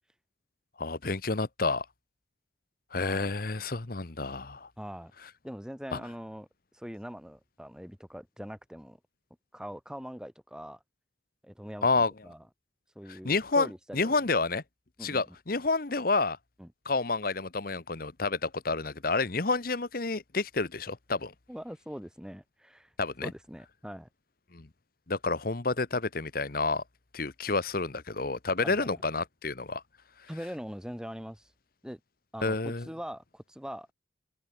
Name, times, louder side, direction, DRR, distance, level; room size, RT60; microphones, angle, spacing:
voice 1, 0.8-1.8 2.9-4.7 5.9-6.0 11.8-12.1 13.1-13.7 13.9-14.6 15.0-16.4 16.8-21.3 23.0-23.3 24.5-24.7 25.1-26.8 27.1-29.8 32.4-32.9, left 3 dB, 50° left, 1.1 m, -29 dB
voice 2, 3.0-3.4 4.8-5.1 5.4-6.5 6.7-9.0 9.5-10.8 11.4-12.4 13.0-14.2 15.0-15.4 16.6-16.7 21.5-22.9 23.2-24.1 28.6-28.9 30.3-31.5 31.8-32.0 32.3-33.9, equal, 5° right, 1.6 m, -42 dB
head